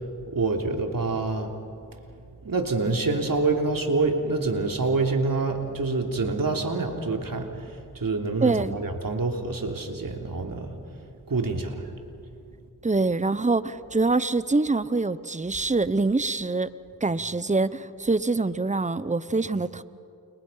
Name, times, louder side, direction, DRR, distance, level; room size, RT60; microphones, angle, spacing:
voice 1, 0.3-1.5 2.4-10.8 11.3-11.8, right 3 dB, 60° right, 3 dB, 3.5 m, -26 dB
voice 2, 8.4-8.8 12.8-16.7 17.0-19.8, right 3 dB, 20° right, 15 dB, 1.1 m, -25 dB
29.5 x 29.5 x 5.8 m, 2.5 s
cardioid pair, 45°, 38 cm